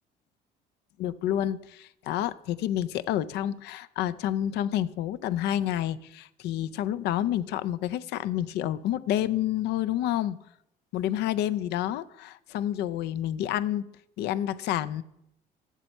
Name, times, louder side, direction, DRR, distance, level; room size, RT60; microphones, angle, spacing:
voice 1, 1.0-10.4 10.9-13.9 14.2-15.0, left 12 dB, 80° left, 0.4 m, -29 dB
7.3 x 6.8 x 5.4 m
cardioid pair, 110°, 17 cm